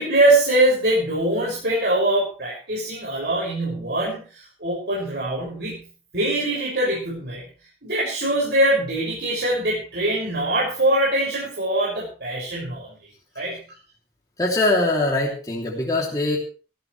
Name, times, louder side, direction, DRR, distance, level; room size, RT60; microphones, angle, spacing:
voice 1, 0.0-5.9 6.1-7.5 7.8-12.9 13.3-13.6, right 1 dB, 70° right, -5 dB, 6.6 m, -23 dB
voice 2, 14.4-16.4, left 2 dB, 20° left, -3 dB, 3.0 m, -22 dB
18.5 x 15.5 x 3.3 m, 0.37 s
head